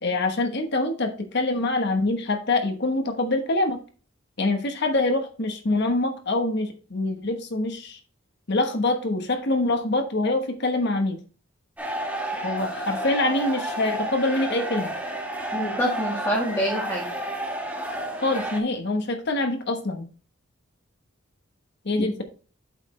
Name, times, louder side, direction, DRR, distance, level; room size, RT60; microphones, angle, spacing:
voice 1, 0.0-3.8 4.4-8.0 8.5-11.2 12.4-14.9 18.2-20.1 21.8-22.1, left 2 dB, 55° left, 6 dB, 1.2 m, -25 dB
sound 1, 11.8-18.6, right 1 dB, 10° right, 1.4 m, -31 dB
voice 2, 15.5-17.1 22.0-22.2, equal, 15° left, -3 dB, 1.8 m, -26 dB
8.1 x 5.8 x 3.2 m, 0.38 s
head